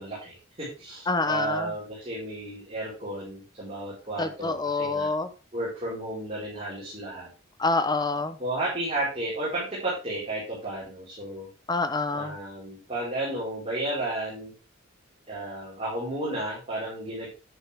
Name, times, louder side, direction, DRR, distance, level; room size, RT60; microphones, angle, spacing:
voice 1, 0.0-5.1 5.5-7.3 8.4-11.5 12.1-14.5 15.3-17.3, right 1 dB, 30° right, -7 dB, 5.0 m, -33 dB
voice 2, 1.1-1.7 4.2-5.3 7.6-8.4 11.7-12.4, left 3 dB, 20° left, 10 dB, 0.9 m, -26 dB
10.5 x 9.6 x 3.5 m, 0.32 s
head